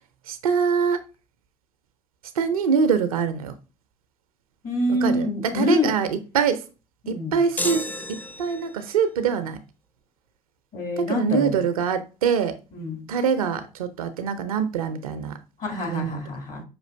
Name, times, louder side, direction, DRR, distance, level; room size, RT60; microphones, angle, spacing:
voice 1, 0.3-1.0 2.4-3.5 5.0-6.6 7.1-9.6 11.0-12.6 13.1-15.4 15.9-16.2, right 6 dB, 85° right, 0.5 m, -24 dB
voice 2, 4.6-5.9 7.0-7.4 10.7-11.6 12.7-13.1 15.6-16.6, left 1 dB, 50° left, 2.2 m, -26 dB
sound 1, 7.6-8.9, left 1 dB, 10° left, 0.4 m, -31 dB
5.7 x 2.4 x 3.3 m
hypercardioid pair, 55°, 18 cm